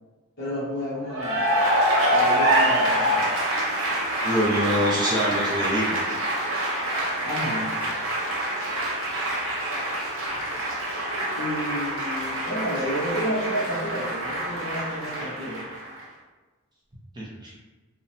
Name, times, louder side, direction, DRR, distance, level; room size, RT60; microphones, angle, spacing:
voice 1, 0.4-1.4 2.1-3.3 7.2-7.8 11.4-15.6, equal, 50° left, -6 dB, 0.8 m, -31 dB
Cheering / Applause, 1.1-16.0, right 1 dB, 70° right, 0.7 m, -26 dB
voice 2, 4.2-6.0 17.1-17.5, equal, 20° right, -6 dB, 0.4 m, -25 dB
2.9 x 2.0 x 2.6 m, 1.3 s
head